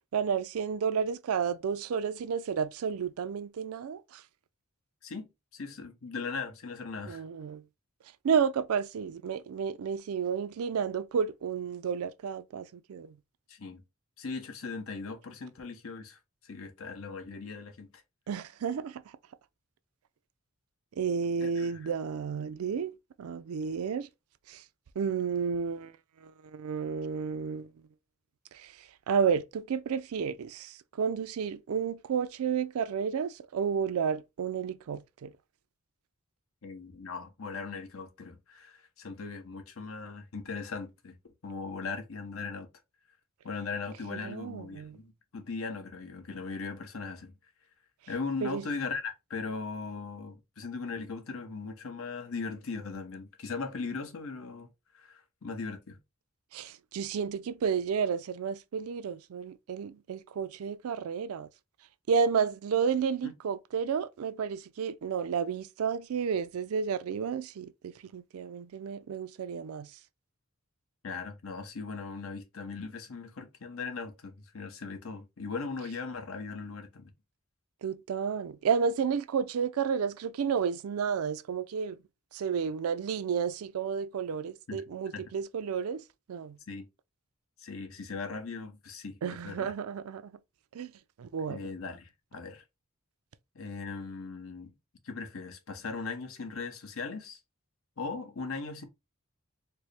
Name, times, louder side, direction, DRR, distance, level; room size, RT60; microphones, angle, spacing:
voice 1, 0.1-4.2 7.1-7.6 8.2-13.2 18.3-19.0 21.0-24.1 24.5-24.6 25.0-25.9 26.2-27.7 28.5-35.3 44.1-45.0 48.4-48.6 56.5-61.5 62.1-69.9 77.8-82.0 82.3-86.6 89.2-90.3 90.7-90.9 91.2-91.6, right 6 dB, 85° right, 0.4 m, -31 dB
voice 2, 5.0-7.2 13.5-13.8 14.2-17.9 21.4-21.8 36.6-41.2 41.4-42.7 43.4-47.4 48.1-54.7 54.9-56.0 63.2-63.3 71.0-77.1 84.7-84.8 85.1-85.2 86.7-86.9 87.6-89.7 91.5-92.6 93.5-94.7 95.0-97.4 98.0-98.8, left 4 dB, 75° left, 0.8 m, -39 dB
4.4 x 2.0 x 3.2 m
head